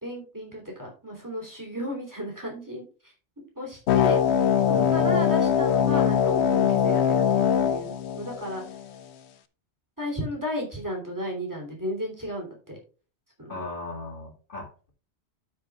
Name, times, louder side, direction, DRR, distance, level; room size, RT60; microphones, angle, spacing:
voice 1, 0.0-3.1 3.5-4.2 4.9-8.6 10.0-12.8 13.4-13.6, left 1 dB, 15° right, 0 dB, 3.2 m, -33 dB
sound 1, 3.9-8.9, left 8 dB, 80° left, 0.9 m, -22 dB
voice 2, 4.7-5.2 13.5-14.9, left 3 dB, 50° left, 0 dB, 2.3 m, -36 dB
12.5 x 6.7 x 2.4 m, 0.36 s
omnidirectional pair, 1.1 m